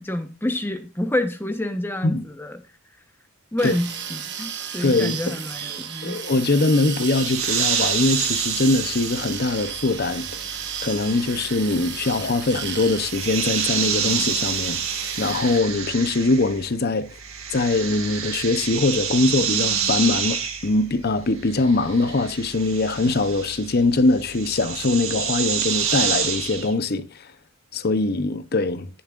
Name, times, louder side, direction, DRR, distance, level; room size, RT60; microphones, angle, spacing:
voice 1, 0.0-2.6 3.5-6.2, left 1 dB, 10° left, 1.1 m, -28 dB
sound 1, 3.6-15.6, right 8 dB, 55° right, 1.2 m, -34 dB
voice 2, 4.8-5.4 6.0-10.4 10.8-14.8 15.2-17.1 17.5-27.3 27.7-28.9, left 3 dB, 45° left, 0.7 m, -22 dB
sound 2, 7.0-16.7 17.0-26.7, right 7 dB, 70° right, 1.9 m, -28 dB
17.5 x 7.1 x 2.5 m
head